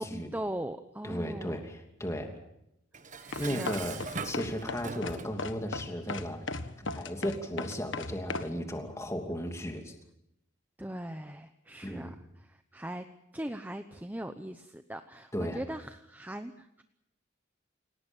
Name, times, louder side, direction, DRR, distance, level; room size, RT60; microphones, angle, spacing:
voice 1, 0.0-1.6 3.2-4.1 10.8-13.1 13.3-16.8, right 1 dB, 10° right, 8 dB, 0.8 m, -40 dB
voice 2, 1.0-2.3 3.4-6.5 6.8-9.9 11.8-12.1 15.3-15.6, equal, 15° left, 4 dB, 2.9 m, -35 dB
Dishes pots and pans, 2.9-5.4, right 4 dB, 40° right, 1.4 m, -41 dB
sound 1, 3.3-8.5, left 3 dB, 75° left, 1.5 m, -36 dB
28.5 x 18.0 x 7.2 m, 0.81 s
head